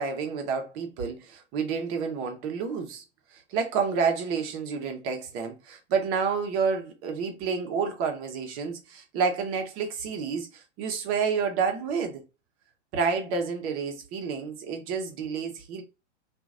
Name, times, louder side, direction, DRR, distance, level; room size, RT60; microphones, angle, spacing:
voice 1, 0.0-3.0 3.5-12.2 12.9-15.8, right 5 dB, 35° right, 1.0 m, -29 dB
2.9 x 2.6 x 2.5 m
hypercardioid pair, 115°, 36 cm